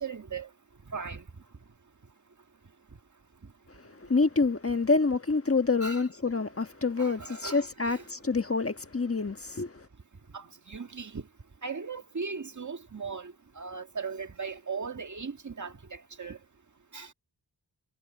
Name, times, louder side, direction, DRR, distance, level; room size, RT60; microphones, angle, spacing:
voice 1, 0.0-0.5 0.9-1.2 5.8-6.1 7.0-8.0 10.3-11.2 11.6-15.7 16.2-16.4 16.9-17.1, right 5 dB, 45° right, 1.9 m, -38 dB
voice 2, 4.1-9.8, left 4 dB, 35° left, 1.4 m, -27 dB
wide cardioid pair, 80°, 42 cm